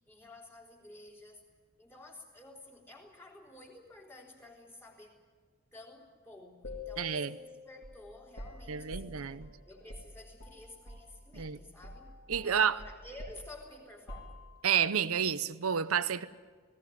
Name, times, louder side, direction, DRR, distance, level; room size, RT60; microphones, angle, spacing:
voice 1, 0.1-1.4 1.8-5.2 5.7-9.3 9.6-12.1 12.4-14.4, left 2 dB, 10° left, 3.7 m, -52 dB
sound 1, 6.6-11.1 11.3-11.6 11.8-14.8, left 2 dB, 55° left, 4.2 m, -47 dB
voice 2, 7.0-7.3 8.7-9.5 11.4-11.6 12.3-12.8 14.6-16.3, right 7 dB, 75° right, 0.8 m, -30 dB
19.5 x 17.5 x 9.3 m
head